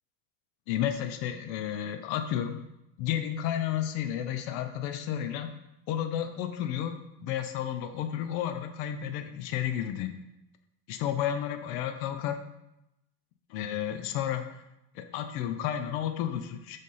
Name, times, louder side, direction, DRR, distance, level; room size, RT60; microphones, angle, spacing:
voice 1, 0.7-2.6 3.0-5.5 5.9-10.2 10.9-12.4 13.5-14.5 14.9-16.8, left 10 dB, 75° left, 8 dB, 0.8 m, -32 dB
6.5 x 3.6 x 5.5 m, 0.89 s
supercardioid pair, 125°, 43 cm